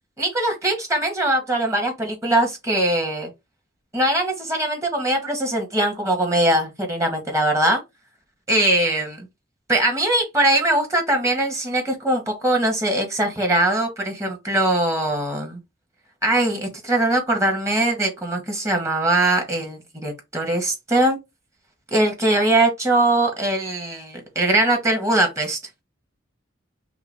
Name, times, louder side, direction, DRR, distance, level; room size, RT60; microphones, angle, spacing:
voice 1, 0.2-3.3 3.9-7.8 8.5-9.3 9.7-15.6 16.2-21.2 21.9-25.6, right 1 dB, 15° right, 1.4 m, -21 dB
5.7 x 2.3 x 3.4 m
head